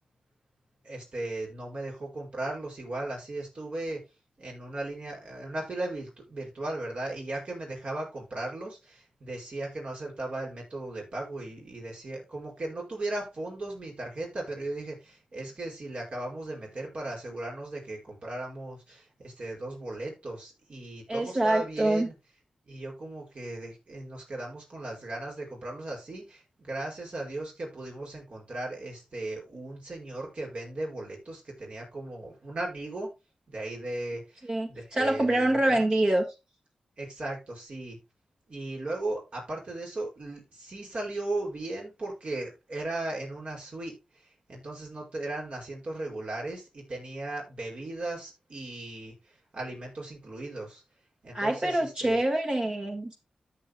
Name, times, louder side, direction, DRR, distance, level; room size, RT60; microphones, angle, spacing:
voice 1, 0.8-4.0 4.4-22.1 22.7-33.1 33.5-35.9 37.0-38.0 38.5-50.8 51.2-52.2, right 2 dB, 60° right, 5.1 m, -37 dB
voice 2, 21.1-22.1 34.4-36.2 51.3-53.2, right 1 dB, 40° right, 1.7 m, -26 dB
13.5 x 6.2 x 2.2 m
cardioid pair, 50°, 2 cm